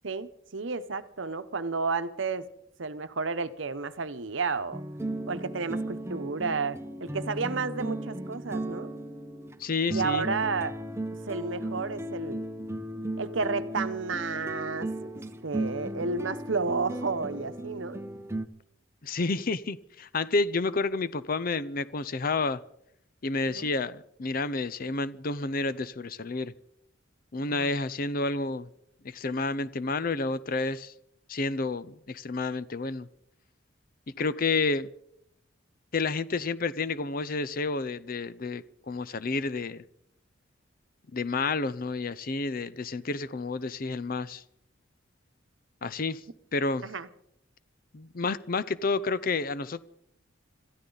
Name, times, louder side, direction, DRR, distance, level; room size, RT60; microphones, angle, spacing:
voice 1, 0.0-2.5 2.8-4.8 5.3-8.9 9.9-10.7 11.3-12.4 13.2-15.1 15.4-18.0 23.4-23.7 27.5-27.7 46.8-47.1, right 4 dB, 70° right, 0.9 m, -31 dB
sound 1, 4.7-18.4, right 1 dB, 15° right, 0.8 m, -36 dB
voice 2, 9.6-10.3 19.0-22.6 23.2-26.5 27.3-28.7 29.0-30.9 31.3-33.1 34.2-34.9 35.9-39.8 41.1-44.4 45.8-46.2 46.5-46.9 47.9-49.8, left 3 dB, 45° left, 0.6 m, -30 dB
27.0 x 13.5 x 4.0 m
head